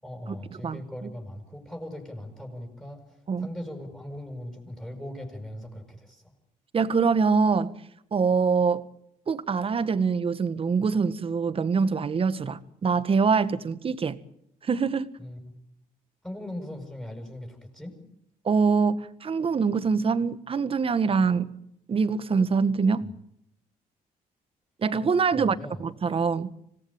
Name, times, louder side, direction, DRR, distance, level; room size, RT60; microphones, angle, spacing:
voice 1, 0.0-6.3 15.2-15.5 16.2-18.0 23.0-23.1 25.3-25.8, left 1 dB, 5° left, 7.0 m, -39 dB
voice 2, 0.6-1.1 3.3-3.5 6.7-7.8 8.1-8.8 9.3-14.2 14.6-15.1 18.4-21.5 21.9-23.1 24.8-26.5, right 5 dB, 40° right, 1.6 m, -24 dB
26.0 x 18.5 x 8.9 m
cardioid pair, 100°, 15 cm